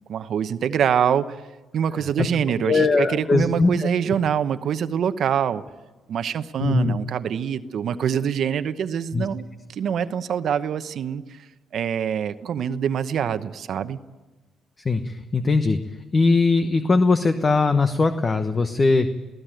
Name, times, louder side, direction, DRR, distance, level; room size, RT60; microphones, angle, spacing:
voice 1, 0.1-1.4 1.7-5.6 6.1-9.4 9.7-11.5 11.7-14.0, right 8 dB, 65° right, 11 dB, 0.9 m, -25 dB
voice 2, 2.6-3.9 6.6-7.0 9.1-9.3 14.8-15.8 16.1-19.1, left 3 dB, 30° left, 9 dB, 1.1 m, -20 dB
21.5 x 16.0 x 9.1 m, 1.2 s
cardioid pair, 90°, 0 cm